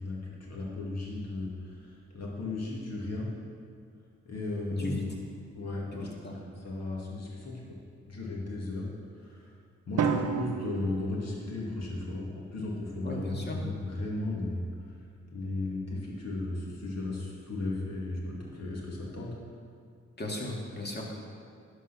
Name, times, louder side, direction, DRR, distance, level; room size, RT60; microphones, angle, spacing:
voice 1, 0.0-3.3 4.2-5.0 5.5-6.1 6.6-7.8 8.1-8.9 9.2-9.5 9.9-14.9 15.3-19.4, left 2 dB, 60° left, -3 dB, 2.5 m, -35 dB
voice 2, 4.7-5.1 5.9-6.4 13.0-13.6 20.2-21.0, left 1 dB, 35° left, -1 dB, 2.3 m, -36 dB
Drum, 10.0-12.0, right 7 dB, 70° right, 0.7 m, -32 dB
11.0 x 4.7 x 6.0 m, 2.2 s
supercardioid pair, 45°, 30 cm